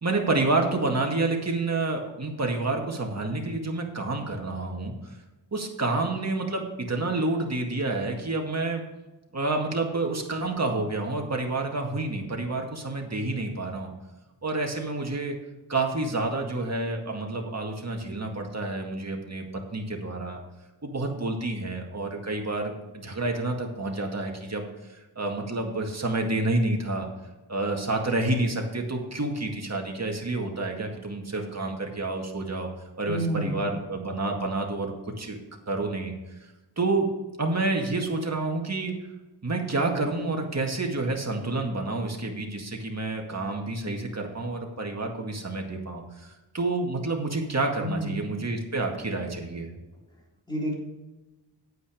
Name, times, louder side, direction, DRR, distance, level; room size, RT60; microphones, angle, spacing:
voice 1, 0.0-4.9 5.5-8.8 9.3-13.9 14.4-15.4 15.7-19.4 19.7-20.4 20.8-24.7 25.2-27.1 27.5-32.7 33.0-35.4 35.7-36.1 36.8-37.1 37.4-38.9 39.4-49.7, right 2 dB, 40° right, 1 dB, 2.0 m, -29 dB
voice 2, 33.1-33.6 47.8-48.2 50.5-50.7, equal, 10° left, -2 dB, 3.3 m, -29 dB
9.2 x 8.9 x 5.0 m, 1.1 s
wide cardioid pair, 100°, 42 cm